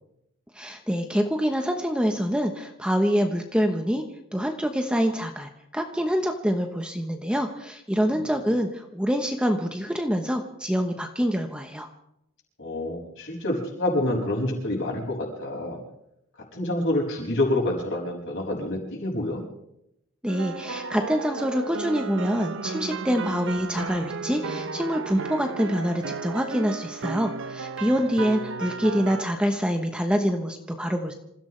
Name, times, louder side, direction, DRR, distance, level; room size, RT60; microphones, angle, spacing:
voice 1, 0.5-4.0 4.3-11.9 20.2-31.1, equal, 5° right, 4 dB, 1.0 m, -26 dB
voice 2, 12.6-15.8 16.5-19.5, left 1 dB, 55° left, -2 dB, 6.2 m, -27 dB
sound 1, 20.3-29.2, right 4 dB, 60° right, 0.8 m, -34 dB
27.5 x 15.5 x 3.3 m, 0.79 s
head